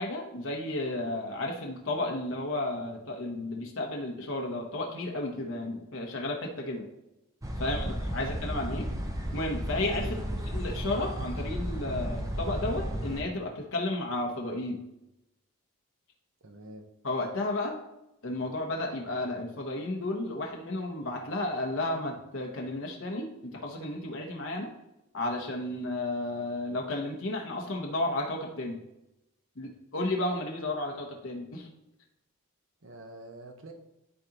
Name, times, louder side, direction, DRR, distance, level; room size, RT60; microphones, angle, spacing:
voice 1, 0.0-6.9 7.6-8.9 9.3-10.2 10.5-14.8 17.0-17.8 18.2-24.7 25.1-28.8 29.6-31.7, left 2 dB, 60° left, 0 dB, 0.9 m, -33 dB
sound 1, 7.4-13.2, equal, 15° right, 0.6 m, -33 dB
voice 2, 7.6-8.4 10.0-10.4 16.4-16.8 29.6-29.7 32.8-33.7, right 2 dB, 60° right, 5 dB, 0.9 m, -47 dB
11.0 x 3.8 x 2.9 m, 0.90 s
head